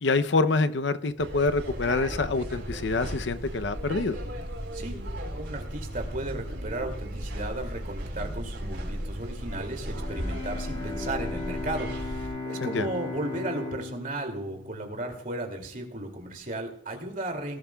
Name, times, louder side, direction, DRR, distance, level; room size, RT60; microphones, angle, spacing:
voice 1, 0.0-4.2 12.6-12.9, left 3 dB, 65° left, 11 dB, 0.6 m, -26 dB
sound 1, 1.2-12.3, equal, 70° right, 4.4 m, -36 dB
voice 2, 5.4-17.6, right 2 dB, 45° right, 4 dB, 2.5 m, -35 dB
Bowed string instrument, 9.9-15.9, left 3 dB, 25° left, 1.9 m, -37 dB
19.0 x 12.5 x 2.3 m, 0.69 s
head